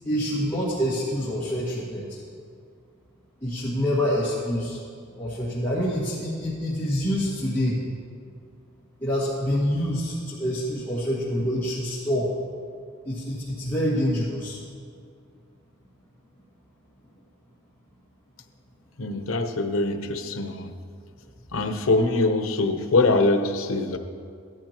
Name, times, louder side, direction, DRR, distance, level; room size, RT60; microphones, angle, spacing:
voice 1, 0.0-2.2 3.4-4.8 5.2-7.8 9.0-12.3 13.0-14.6, equal, 15° left, -9 dB, 1.9 m, -26 dB
voice 2, 19.0-20.7 21.5-24.0, left 2 dB, 90° left, 7 dB, 0.8 m, -23 dB
15.5 x 12.0 x 3.0 m, 2.3 s
head